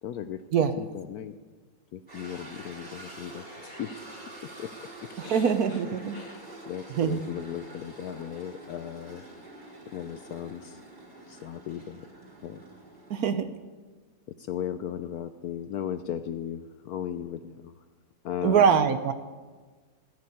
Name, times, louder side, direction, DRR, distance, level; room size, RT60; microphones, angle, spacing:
voice 1, 0.0-0.4 0.8-1.3 1.9-4.7 5.0-5.8 6.1-9.2 9.9-10.8 11.3-12.1 12.4-12.6 14.3-17.8 18.2-18.9, left 10 dB, 70° left, 11 dB, 0.9 m, -37 dB
sound 1, 2.1-13.2, right 2 dB, 25° right, 4.5 m, -46 dB
voice 2, 5.2-6.2 7.0-7.2 13.1-13.5 18.4-19.1, right 7 dB, 65° right, 10 dB, 1.1 m, -23 dB
16.5 x 6.6 x 9.7 m, 1.4 s
omnidirectional pair, 2.0 m